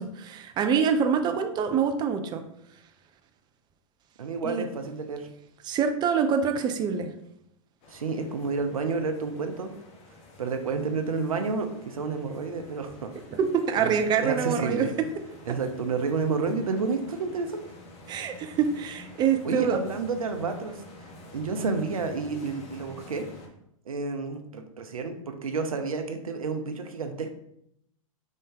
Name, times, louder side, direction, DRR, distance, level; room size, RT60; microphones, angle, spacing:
voice 1, 0.0-2.4 4.4-4.6 5.6-7.1 13.3-14.8 18.1-19.8, right 7 dB, 25° right, 6 dB, 0.5 m, -25 dB
voice 2, 4.2-5.3 7.9-9.7 10.4-13.1 13.8-14.9 15.5-17.7 19.4-23.3 23.9-27.3, right 4 dB, 85° right, 7 dB, 0.5 m, -30 dB
sound 1, 7.8-23.5, left 2 dB, 35° left, 0.8 m, -49 dB
3.6 x 2.6 x 3.6 m, 0.77 s
hypercardioid pair, 105°, 18 cm